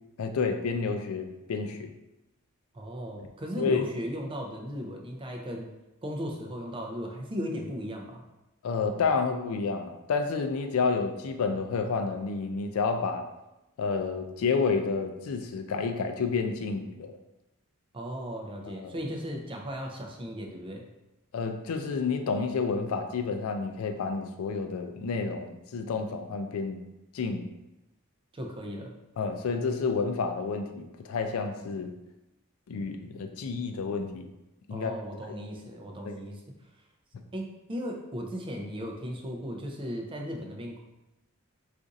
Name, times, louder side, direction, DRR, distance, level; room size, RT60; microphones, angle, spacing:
voice 1, 0.2-1.9 3.6-3.9 8.6-13.3 13.8-17.1 18.6-18.9 21.3-26.8 27.1-27.5 29.2-31.9 32.7-34.3 34.7-34.9 36.1-36.2, left 4 dB, 75° left, 5 dB, 0.4 m, -30 dB
voice 2, 2.7-5.7 6.0-8.2 17.9-20.8 28.3-28.9 34.7-36.4 37.3-40.8, equal, 25° right, 1 dB, 0.4 m, -36 dB
2.5 x 2.4 x 3.9 m, 0.96 s
head